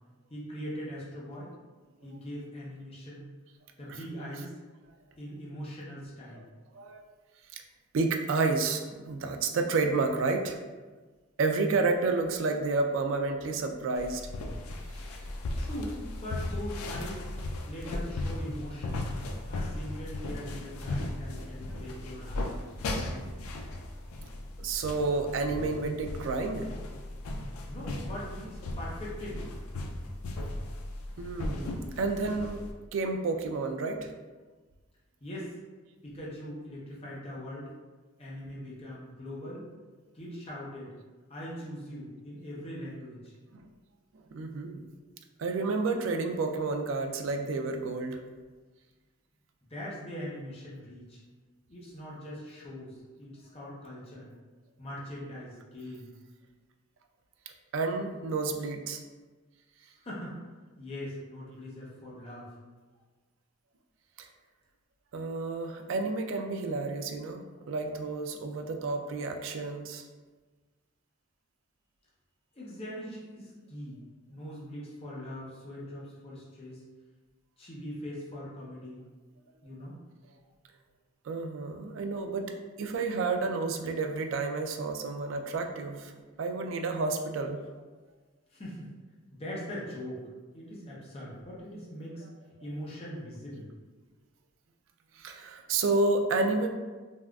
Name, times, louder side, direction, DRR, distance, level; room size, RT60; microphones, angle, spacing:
voice 1, 0.3-1.5 2.0-3.2 3.8-4.5 5.2-6.4 13.7-13.8 15.6-17.2 17.7-19.0 19.5-22.4 22.9-23.2 27.6-29.4 35.2-35.5 36.0-37.7 38.2-39.7 40.1-40.9 41.3-43.3 49.7-51.2 51.7-54.3 54.8-56.1 60.0-60.4 60.8-62.5 72.5-74.0 74.3-76.8 77.6-79.0 79.6-80.0 88.5-88.9 89.3-90.3 90.5-92.2 92.6-93.7, equal, 30° left, -6 dB, 0.6 m, -41 dB
voice 2, 7.9-10.6 11.4-14.2 24.6-26.7 31.2-32.6 32.9-34.1 43.5-43.6 44.3-44.8 45.4-48.2 57.7-59.0 64.2-64.3 65.1-67.4 67.7-70.0 81.3-82.5 82.8-86.1 86.4-87.6 95.2-96.7, right 3 dB, 60° right, 5 dB, 0.3 m, -30 dB
sound 1, 14.0-32.7, left 2 dB, 85° left, 0.4 m, -37 dB
3.5 x 2.3 x 2.3 m, 1.3 s
head